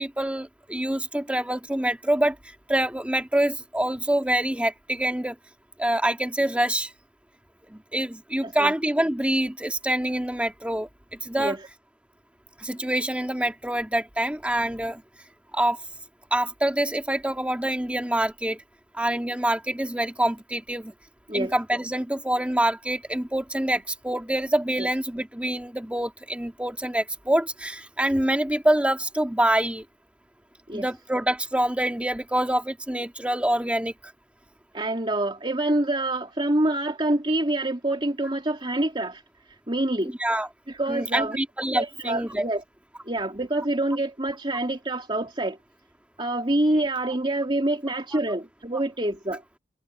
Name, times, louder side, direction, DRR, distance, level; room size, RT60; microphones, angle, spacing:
voice 1, 0.0-2.4 2.7-5.4 5.8-6.9 7.7-10.9 11.2-11.6 12.6-15.0 15.5-15.8 16.3-18.6 18.9-20.9 21.3-29.8 30.7-34.1 40.2-40.5 40.9-42.5 48.1-48.2, right 1 dB, 5° right, 1.8 m, -26 dB
voice 2, 34.7-39.2 39.7-40.1 40.7-41.4 41.7-42.6 43.1-45.6 46.2-49.4, right 1 dB, 30° right, 2.9 m, -26 dB
head